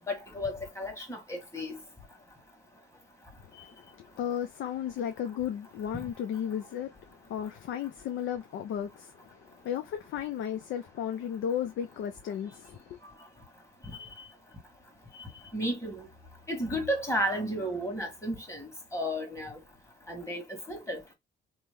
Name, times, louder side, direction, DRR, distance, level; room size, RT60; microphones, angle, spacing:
voice 1, 0.1-1.8 13.9-14.0 15.5-16.1 16.5-19.6 20.1-21.0, equal, 15° left, 1.5 m, -33 dB
voice 2, 3.6-13.0, left 9 dB, 75° left, 0.5 m, -35 dB
2.9 x 2.1 x 3.5 m
cardioid pair, 90°, 20 cm